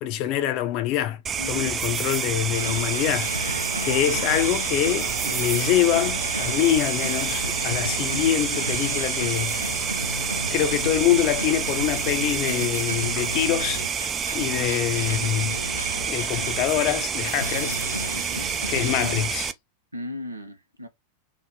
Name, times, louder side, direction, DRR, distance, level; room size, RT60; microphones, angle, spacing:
voice 1, 0.0-1.2 1.5-9.8 10.5-13.9 14.3-15.6 16.1-18.3 18.7-19.5, left 12 dB, 40° left, 0.5 m, -25 dB
sound 1, 1.3-19.5, right 7 dB, 25° right, 0.4 m, -28 dB
voice 2, 1.4-1.7 18.2-18.5 19.9-20.9, left 1 dB, 80° right, 0.6 m, -36 dB
sound 2, 2.5-19.3, equal, 90° left, 0.3 m, -33 dB
3.3 x 2.0 x 3.7 m
figure-of-eight pair, 90°, 0 cm